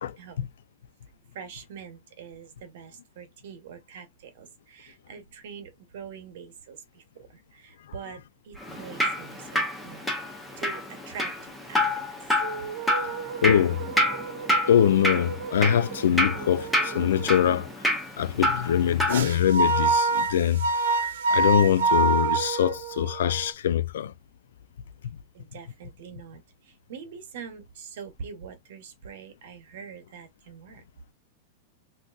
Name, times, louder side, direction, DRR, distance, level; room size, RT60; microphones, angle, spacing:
voice 1, 0.2-0.5 1.3-10.1 10.6-11.3 11.7-12.0 25.3-30.8, right 6 dB, 55° right, 1.0 m, -44 dB
Drip, 8.6-19.2, left 1 dB, 5° left, 0.5 m, -28 dB
sound 1, 12.4-17.6 19.1-23.5, right 3 dB, 80° right, 0.7 m, -28 dB
voice 2, 13.4-13.8 14.5-17.7 18.2-20.6 21.0-24.1 25.0-25.2, left 9 dB, 80° left, 0.3 m, -23 dB
3.7 x 2.6 x 2.3 m
supercardioid pair, 175°, 0 cm